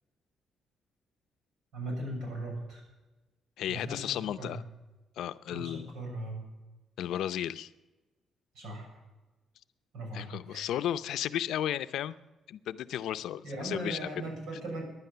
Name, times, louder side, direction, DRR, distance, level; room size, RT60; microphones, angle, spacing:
voice 1, 1.7-2.8 3.7-4.6 5.5-6.5 8.5-8.9 9.9-10.7 13.4-14.8, right 1 dB, 90° right, 1 dB, 7.0 m, -38 dB
voice 2, 3.6-4.6 5.2-5.9 7.0-7.7 10.1-12.2 12.5-14.2, left 11 dB, 80° left, 12 dB, 0.6 m, -34 dB
16.0 x 11.0 x 6.8 m, 1.1 s
cardioid pair, 120°, 0 cm